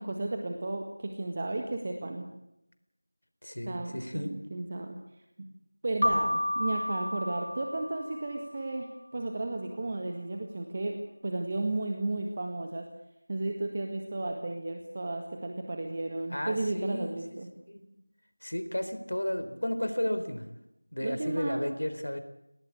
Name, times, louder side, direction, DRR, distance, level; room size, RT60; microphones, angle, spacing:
voice 1, 0.0-2.3 3.7-5.0 5.4-5.5 5.8-12.8 13.3-17.5 21.0-21.6, right 2 dB, 25° right, 3 dB, 1.7 m, -33 dB
voice 2, 3.4-4.3 16.3-17.2 17.7-17.9 18.4-20.5 20.9-22.2, left 1 dB, 80° left, 10 dB, 3.9 m, -33 dB
Keyboard (musical), 6.0-8.6, left 1 dB, 60° left, 1.6 m, -31 dB
29.0 x 18.5 x 8.4 m, 0.89 s
figure-of-eight pair, 175°, 0 cm